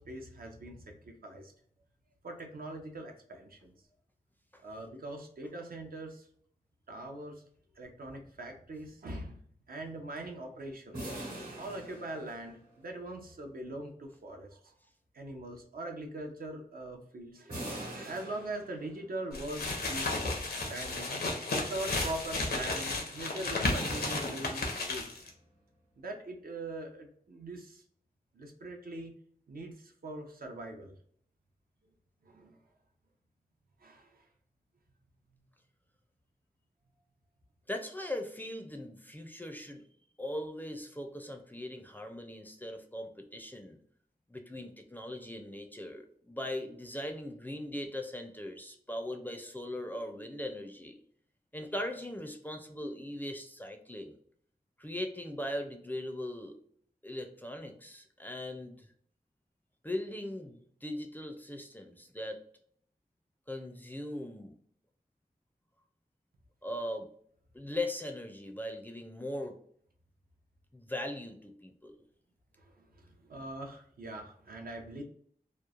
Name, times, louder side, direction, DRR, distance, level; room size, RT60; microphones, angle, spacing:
voice 1, 0.0-1.5 2.2-3.7 4.6-6.3 6.9-7.4 7.8-9.4 9.7-11.1 11.6-14.7 15.1-20.4 20.7-21.2 21.5-25.2 26.0-27.8 28.3-29.1 29.5-30.9 32.2-32.6 33.8-34.1 72.6-75.0, right 2 dB, 70° right, 2 dB, 0.6 m, -42 dB
sound 1, 10.9-12.8 17.5-19.1 23.6-25.3, right 1 dB, 90° right, 1.2 m, -43 dB
sound 2, 19.3-25.3, left 2 dB, 85° left, 0.7 m, -33 dB
voice 2, 37.7-39.9 40.2-43.8 44.3-51.0 51.5-54.2 54.8-56.6 57.0-58.9 59.8-62.4 63.5-64.5 66.6-67.1 67.5-69.6 70.7-72.0, left 1 dB, 10° left, 4 dB, 0.4 m, -39 dB
3.0 x 2.0 x 2.3 m, 0.62 s
wide cardioid pair, 75°, 16 cm